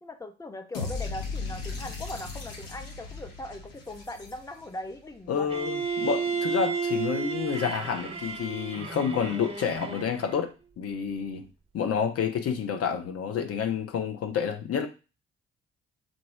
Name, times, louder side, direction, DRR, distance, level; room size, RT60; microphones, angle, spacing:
voice 1, 0.0-5.5, left 1 dB, 10° left, 0.8 m, -40 dB
sound 1, 0.7-4.9, left 4 dB, 75° left, 1.3 m, -37 dB
voice 2, 5.3-10.5 10.8-11.5 11.7-14.9, left 7 dB, 50° left, 0.7 m, -29 dB
Bowed string instrument, 5.5-10.4, right 5 dB, 20° right, 1.1 m, -32 dB
3.8 x 3.0 x 4.8 m
figure-of-eight pair, 45°, 31 cm